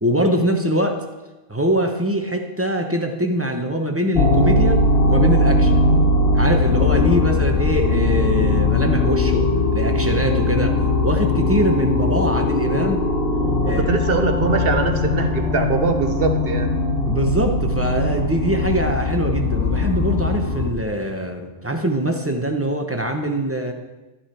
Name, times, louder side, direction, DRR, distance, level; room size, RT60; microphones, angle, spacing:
voice 1, 0.0-1.0 1.5-4.8 5.1-5.8 6.3-9.5 9.7-10.8 11.0-13.0 13.6-13.9 17.1-23.7, right 1 dB, 15° right, 4 dB, 0.8 m, -23 dB
sound 1, 4.2-20.7, left 2 dB, 50° left, 1.3 m, -19 dB
voice 2, 13.6-16.7, right 4 dB, 50° right, 6 dB, 1.1 m, -22 dB
13.0 x 8.1 x 4.4 m, 1.1 s
omnidirectional pair, 1.3 m